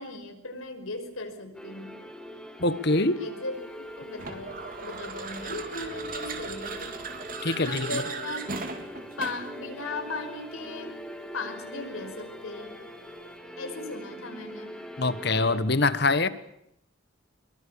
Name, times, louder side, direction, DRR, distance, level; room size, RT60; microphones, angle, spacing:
voice 1, 0.0-2.0 3.2-6.9 7.5-8.4 9.2-11.0 11.3-12.8 13.6-14.7, left 2 dB, 85° left, 5 dB, 5.5 m, -37 dB
sound 1, 1.5-15.6, equal, 5° left, 2.4 m, -42 dB
voice 2, 2.6-3.2 7.4-8.0 15.0-16.3, left 2 dB, 50° left, 14 dB, 1.5 m, -24 dB
sound 2, 4.2-9.6, right 4 dB, 40° right, 3.4 m, -37 dB
25.5 x 23.5 x 7.1 m, 0.76 s
head